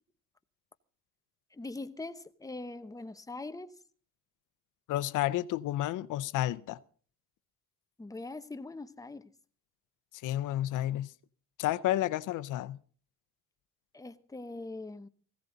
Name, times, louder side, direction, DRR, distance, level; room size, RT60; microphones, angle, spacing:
voice 1, 1.5-3.7 8.0-9.3 13.9-15.1, left 2 dB, 10° left, 1.0 m, -42 dB
voice 2, 4.9-6.8 10.1-11.1 11.6-12.8, left 14 dB, 85° left, 0.7 m, -31 dB
18.5 x 16.0 x 3.9 m
cardioid pair, 90°, 30 cm